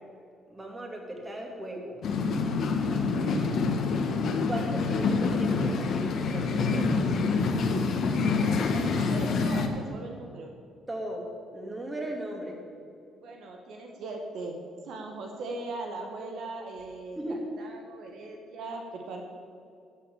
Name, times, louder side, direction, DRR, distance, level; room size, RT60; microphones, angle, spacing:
voice 1, 0.5-2.0 2.9-3.7 4.5-7.2 10.9-11.2 11.5-12.6 17.2-17.4, right 1 dB, 20° right, 1 dB, 2.6 m, -37 dB
sound 1, 2.0-9.7, left 4 dB, 65° left, 1.2 m, -26 dB
voice 2, 8.3-10.5 13.2-14.6 14.8-19.3, right 2 dB, 75° right, 2 dB, 1.3 m, -39 dB
13.0 x 6.6 x 7.0 m, 2.4 s
supercardioid pair, 75°, 0 cm